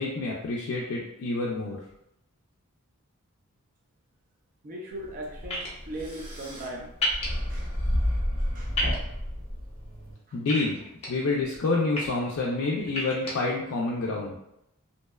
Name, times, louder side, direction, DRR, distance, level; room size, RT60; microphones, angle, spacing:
voice 1, 0.0-1.8 10.3-10.8 11.1-14.4, left 3 dB, 65° left, -3 dB, 0.3 m, -28 dB
voice 2, 4.6-6.9 7.5-7.7 8.4-8.7 10.3-10.4, right 1 dB, 40° right, -1 dB, 0.4 m, -39 dB
sound 1, 5.0-10.1, left 1 dB, 85° right, 1.3 m, -31 dB
sound 2, 5.5-5.7 7.0-7.3 8.7-9.0 10.5-11.1 11.7-12.0 12.9-13.3, left 1 dB, 30° left, 0.7 m, -29 dB
2.6 x 2.1 x 2.2 m, 0.83 s
head